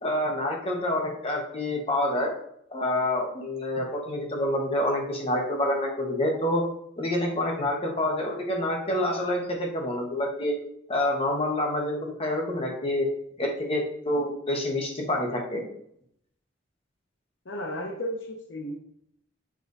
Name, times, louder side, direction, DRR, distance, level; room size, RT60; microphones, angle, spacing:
voice 1, 0.0-2.3 2.7-6.6 7.0-10.5 10.9-13.1 13.4-15.6, left 1 dB, 30° left, 0 dB, 1.4 m, -27 dB
voice 2, 17.5-18.8, equal, 80° left, 1 dB, 0.8 m, -34 dB
7.4 x 3.5 x 4.1 m, 0.72 s
head